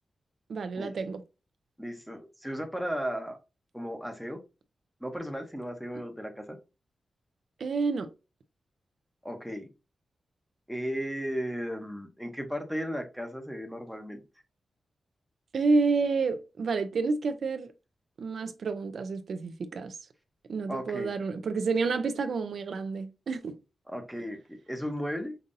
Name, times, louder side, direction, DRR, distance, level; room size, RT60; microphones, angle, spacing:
voice 1, 0.5-1.2 7.6-8.1 15.5-17.7 18.2-20.0 20.5-23.5, right 4 dB, 60° right, 0.4 m, -29 dB
voice 2, 1.8-3.4 3.7-4.4 5.0-6.6 9.2-9.7 10.7-14.2 20.7-21.1 23.9-25.4, equal, ahead, 0.8 m, -35 dB
5.3 x 2.6 x 2.6 m
wide cardioid pair, 145°, 0 cm